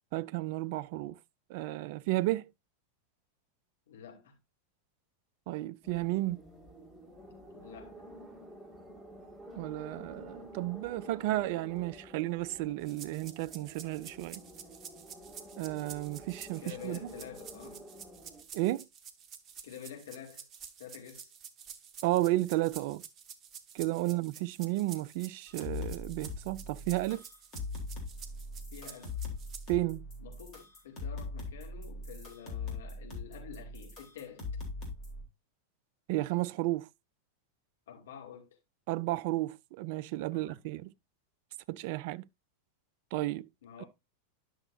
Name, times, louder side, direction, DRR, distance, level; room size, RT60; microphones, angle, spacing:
voice 1, 0.1-1.2 1.5-2.5 5.5-6.4 9.5-14.4 15.6-17.0 18.5-18.8 22.0-23.0 23.7-27.2 29.7-30.1 36.1-36.9 38.9-40.9 41.7-42.2 43.1-43.5, right 17 dB, 50° right, 0.4 m, -33 dB
voice 2, 3.9-4.4 7.5-8.0 16.6-17.9 19.6-20.4 20.8-21.3 23.8-24.3 28.7-29.2 30.2-34.5 37.9-38.6 40.3-40.6 43.6-43.9, left 9 dB, 60° left, 2.7 m, -48 dB
sound 1, 5.8-18.4, equal, 5° left, 3.0 m, -50 dB
sound 2, 12.9-29.7, right 7 dB, 30° right, 0.9 m, -50 dB
sound 3, 25.5-35.2, left 3 dB, 35° left, 3.8 m, -41 dB
10.5 x 6.4 x 2.7 m
figure-of-eight pair, 90°, 0 cm